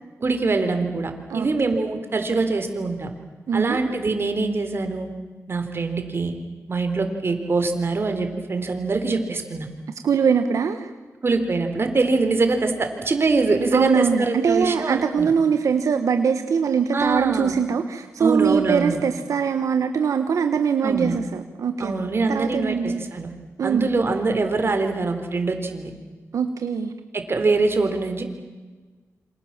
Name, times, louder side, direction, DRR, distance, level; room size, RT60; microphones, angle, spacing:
voice 1, 0.2-3.1 3.5-5.1 5.5-6.3 6.7-9.7 11.2-15.3 16.9-17.6 18.2-19.0 20.8-21.2 21.8-23.3 23.6-25.9 27.1-28.2, right 3 dB, 45° right, 6 dB, 3.9 m, -23 dB
voice 2, 3.5-3.8 10.0-10.9 13.7-21.9 22.3-23.0 23.6-23.9 26.3-26.9, right 6 dB, 85° right, 7 dB, 1.4 m, -22 dB
28.0 x 26.0 x 7.5 m, 1.3 s
wide cardioid pair, 90°, 5 cm